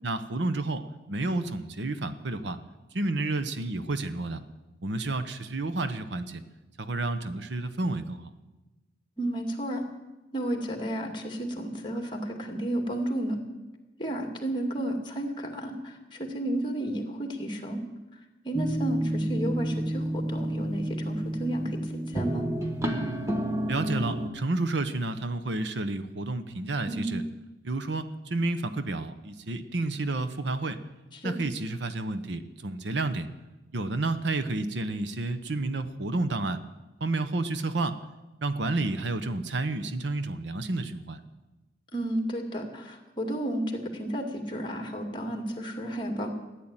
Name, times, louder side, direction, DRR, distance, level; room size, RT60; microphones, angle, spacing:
voice 1, 0.0-2.6 2.9-4.4 4.8-6.4 6.8-8.3 23.7-27.2 27.6-30.8 31.2-33.3 33.7-36.6 37.0-38.0 38.4-41.2, right 2 dB, 70° right, 11 dB, 0.9 m, -30 dB
voice 2, 9.2-9.8 10.3-13.4 14.0-17.8 18.4-22.5 26.9-27.1 31.1-31.4 41.9-46.3, right 1 dB, 25° left, 4 dB, 2.1 m, -32 dB
sound 1, 18.5-24.3, right 1 dB, 15° right, 1.4 m, -30 dB
14.5 x 10.5 x 8.9 m, 1.1 s
head